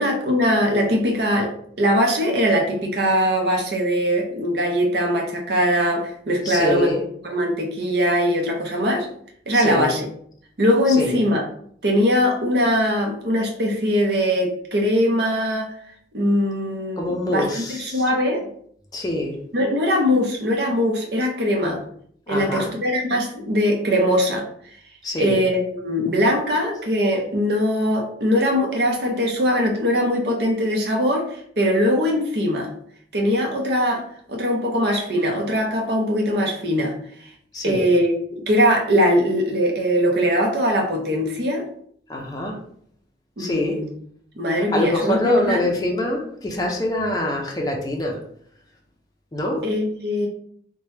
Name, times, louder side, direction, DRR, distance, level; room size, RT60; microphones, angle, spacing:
voice 1, 0.0-6.9 7.2-9.1 9.5-10.0 10.6-11.4 11.8-15.7 16.1-18.5 19.5-21.8 22.3-24.5 25.2-31.3 31.6-32.7 33.1-34.0 34.3-36.9 37.6-38.1 38.4-41.6 43.4-43.9 44.4-45.6 49.6-50.3, equal, 60° right, 1 dB, 0.7 m, -21 dB
voice 2, 6.4-7.0 9.5-9.9 10.9-11.2 17.0-18.0 18.9-19.4 21.6-21.8 22.3-22.7 25.0-25.4 37.5-37.9 42.1-42.6 43.4-43.8 44.5-48.2 49.3-49.6, left 1 dB, 20° left, 0 dB, 0.5 m, -25 dB
2.9 x 2.2 x 3.2 m, 0.64 s
head